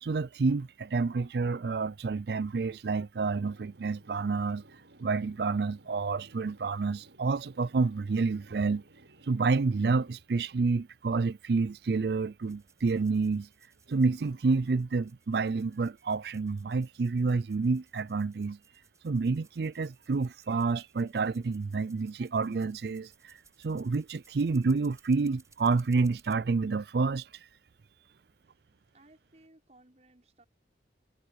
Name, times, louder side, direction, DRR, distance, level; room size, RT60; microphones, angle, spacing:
voice 1, 0.0-4.6 5.0-8.8 9.3-13.5 13.9-18.6 19.0-23.3 23.6-27.3, right 4 dB, 60° right, 0.4 m, -29 dB
sound 1, 3.2-10.3, right 1 dB, 85° right, 6.8 m, -58 dB
sound 2, 12.4-26.3, right 5 dB, 20° right, 6.7 m, -64 dB
voice 2, 28.9-30.4, right 2 dB, 40° right, 6.0 m, -60 dB
head